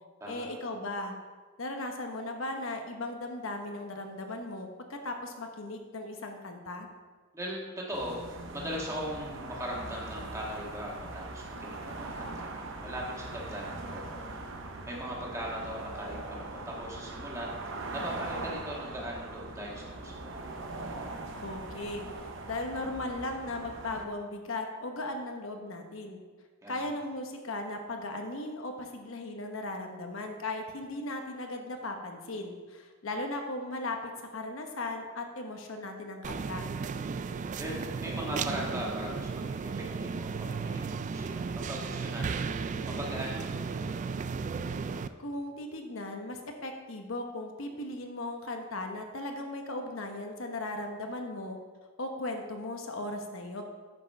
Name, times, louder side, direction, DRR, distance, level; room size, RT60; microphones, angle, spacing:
voice 1, 0.3-1.1 1.6-6.9 21.4-22.1 22.5-26.2 26.7-36.7 45.2-51.6 52.0-53.6, left 2 dB, 70° left, 4 dB, 1.0 m, -37 dB
voice 2, 7.3-8.2 8.5-14.6 14.9-20.4 26.6-26.8 37.6-42.5 42.8-44.0, equal, 15° right, -3 dB, 1.8 m, -39 dB
sound 1, 7.9-24.0, right 2 dB, 65° right, 0.9 m, -41 dB
sound 2, 36.2-45.1, right 5 dB, 35° right, 0.3 m, -34 dB
8.8 x 5.5 x 5.6 m, 1.4 s
head